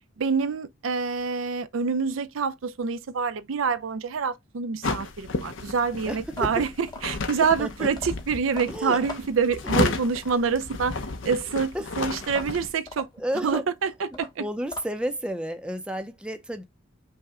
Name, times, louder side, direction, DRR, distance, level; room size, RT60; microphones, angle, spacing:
voice 1, 0.2-13.1 13.4-14.4, right 5 dB, 90° right, 0.5 m, -27 dB
sound 1, 4.8-12.7, left 3 dB, 70° left, 0.6 m, -32 dB
voice 2, 6.0-6.5 7.6-7.9 8.7-9.0 9.8-9.9 10.5-10.6 11.7-11.9 13.2-13.6 14.1-16.6, equal, 5° right, 0.4 m, -31 dB
sound 2, 6.2-10.6 12.2-15.2, left 3 dB, 20° left, 0.8 m, -42 dB
5.5 x 2.1 x 3.6 m
head